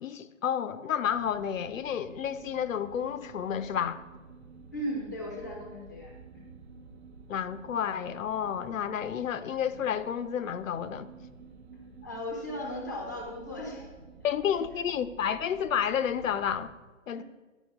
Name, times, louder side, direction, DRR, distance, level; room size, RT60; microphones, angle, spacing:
voice 1, 0.0-4.0 7.3-11.1 14.2-16.7 17.1-17.2, left 8 dB, 85° left, 0.6 m, -30 dB
sound 1, 1.0-16.7, right 4 dB, 55° right, 0.8 m, -51 dB
voice 2, 4.7-6.1 12.0-13.9 14.7-14.8 17.1-17.2, equal, 15° left, 0.5 m, -36 dB
9.1 x 4.4 x 4.5 m
hypercardioid pair, 165°, 39 cm